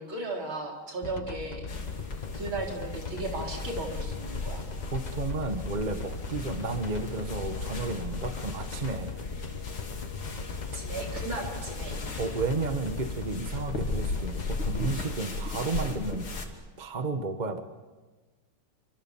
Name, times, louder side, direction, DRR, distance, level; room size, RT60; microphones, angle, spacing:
voice 1, 0.0-1.7 2.3-4.6 10.7-12.0, right 2 dB, 65° right, 0 dB, 4.8 m, -35 dB
sound 1, 1.0-15.1, left 4 dB, 35° left, 0.7 m, -38 dB
sound 2, 1.7-16.5, left 3 dB, 75° left, 3.7 m, -37 dB
voice 2, 4.9-9.1 12.2-16.3 16.8-17.6, right 3 dB, 25° right, 8 dB, 1.2 m, -32 dB
28.0 x 25.5 x 7.3 m, 1.3 s
omnidirectional pair, 2.3 m